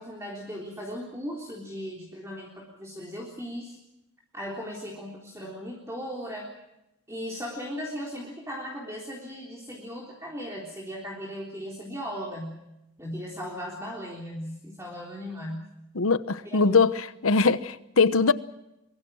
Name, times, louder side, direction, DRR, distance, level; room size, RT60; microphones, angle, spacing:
voice 1, 0.0-3.8 4.3-6.5 7.1-12.6 13.0-15.6 16.4-17.0, equal, 15° right, -2 dB, 3.6 m, -37 dB
voice 2, 15.9-16.9 17.2-18.3, left 4 dB, 90° left, 15 dB, 1.0 m, -21 dB
23.5 x 23.5 x 6.3 m, 0.87 s
head